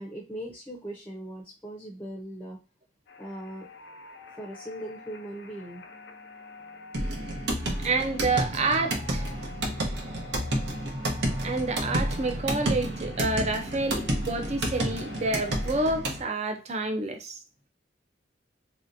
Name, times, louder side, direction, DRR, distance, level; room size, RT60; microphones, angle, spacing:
voice 1, 0.0-2.6 3.2-3.7 4.4-5.8, right 1 dB, 10° left, 0.6 m, -39 dB
sound 1, 3.1-15.7, left 3 dB, 85° left, 0.7 m, -47 dB
sound 2, 6.9-16.2, right 1 dB, 75° right, 0.9 m, -30 dB
voice 2, 7.8-9.2 11.4-17.4, right 3 dB, 40° right, 0.5 m, -28 dB
3.2 x 2.8 x 2.5 m
head